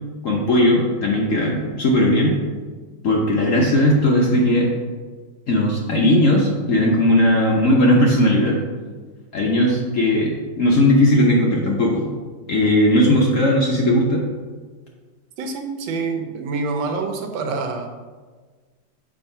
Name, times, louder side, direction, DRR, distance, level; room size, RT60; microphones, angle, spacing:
voice 1, 0.2-2.4 3.0-4.7 5.5-8.6 9.3-12.0 12.5-14.2, left 1 dB, 60° left, -2 dB, 0.9 m, -17 dB
voice 2, 15.4-18.0, right 4 dB, 75° right, 4 dB, 1.4 m, -26 dB
7.0 x 2.9 x 5.4 m, 1.4 s
omnidirectional pair, 2.1 m